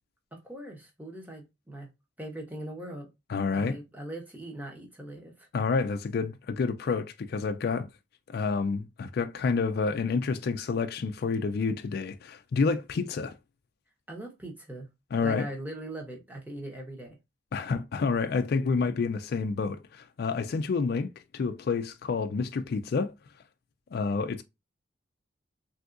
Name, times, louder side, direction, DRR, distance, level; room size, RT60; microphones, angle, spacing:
voice 1, 0.3-1.9 2.2-3.1 3.5-5.5 14.1-14.9 15.2-17.2 17.5-17.7, right 1 dB, 10° right, 0.9 m, -40 dB
voice 2, 3.3-3.8 5.5-7.9 8.3-13.3 15.1-15.5 17.5-23.1 23.9-24.4, left 4 dB, 55° left, 0.3 m, -29 dB
3.5 x 2.7 x 2.4 m
head